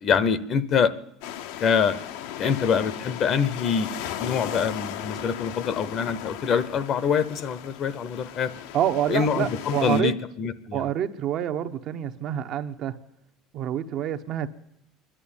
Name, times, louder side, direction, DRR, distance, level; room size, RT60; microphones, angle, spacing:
voice 1, 0.0-0.9 1.6-2.0 2.4-3.9 4.2-8.5 9.1-10.9, left 6 dB, 35° left, 16 dB, 0.8 m, -25 dB
sound 1, 1.2-10.0, left 11 dB, 80° left, 1.1 m, -36 dB
voice 2, 8.7-10.1 10.7-12.9 13.5-14.5, right 10 dB, 40° right, 8 dB, 0.9 m, -27 dB
27.0 x 11.5 x 8.8 m, 0.78 s
cardioid pair, 170°, 0 cm